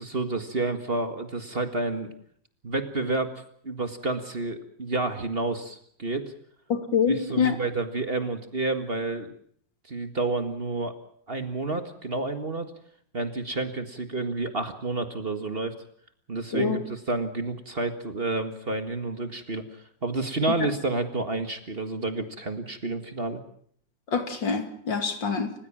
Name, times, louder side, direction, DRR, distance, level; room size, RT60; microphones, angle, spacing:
voice 1, 0.0-2.1 2.6-3.3 3.6-6.3 7.1-9.3 9.9-10.9 11.3-12.7 13.1-15.7 16.3-19.6 20.0-23.4, right 3 dB, 30° right, 8 dB, 1.9 m, -29 dB
voice 2, 6.7-7.6 16.5-16.8 24.1-25.5, left 6 dB, 75° left, 7 dB, 3.2 m, -25 dB
30.0 x 16.0 x 7.4 m, 0.63 s
omnidirectional pair, 2.0 m